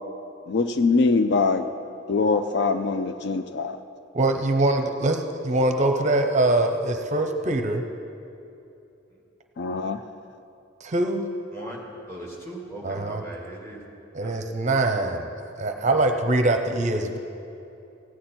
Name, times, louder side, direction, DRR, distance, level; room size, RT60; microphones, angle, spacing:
voice 1, 0.5-1.7 2.1-3.8 9.6-10.0, left 4 dB, 60° left, 9 dB, 0.4 m, -23 dB
voice 2, 4.1-7.8 10.8-11.3 12.8-13.2 14.1-15.3 15.6-17.2, right 2 dB, 40° right, 5 dB, 0.6 m, -23 dB
voice 3, 12.1-13.8 14.2-14.3 15.9-16.0, right 1 dB, 15° left, -2 dB, 1.8 m, -38 dB
15.5 x 9.4 x 4.4 m, 2.8 s
head